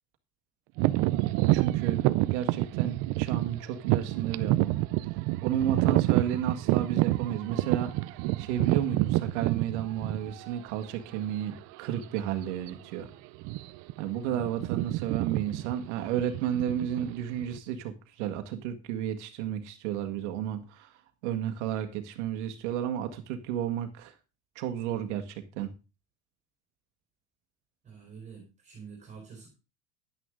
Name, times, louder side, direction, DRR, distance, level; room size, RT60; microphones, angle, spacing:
sound 1, 0.8-10.5 11.2-11.3 11.9-12.2 12.5-12.7 13.3-13.9 14.2-17.6, right 18 dB, 40° right, 0.5 m, -28 dB
voice 1, 0.9-4.8 5.4-8.1 8.4-13.1 14.0-21.0 21.2-24.1 24.5-25.7, right 10 dB, 80° right, 6 dB, 1.7 m, -32 dB
voice 2, 27.8-29.5, right 6 dB, 20° right, 1 dB, 3.8 m, -47 dB
10.5 x 9.7 x 3.7 m, 0.30 s
cardioid pair, 175°, 35 cm